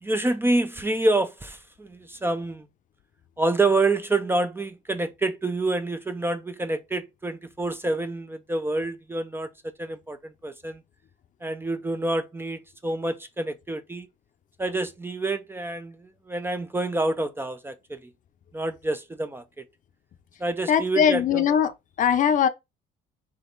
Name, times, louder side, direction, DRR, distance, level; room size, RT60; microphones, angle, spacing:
voice 1, 0.0-2.7 3.4-9.5 9.8-10.8 11.4-14.1 14.6-18.0 18.5-19.6 20.4-21.4, right 2 dB, 15° right, 0.4 m, -27 dB
voice 2, 20.7-21.7 22.0-22.5, left 8 dB, 50° left, 0.6 m, -20 dB
3.6 x 2.9 x 3.9 m
cardioid pair, 110°, 17 cm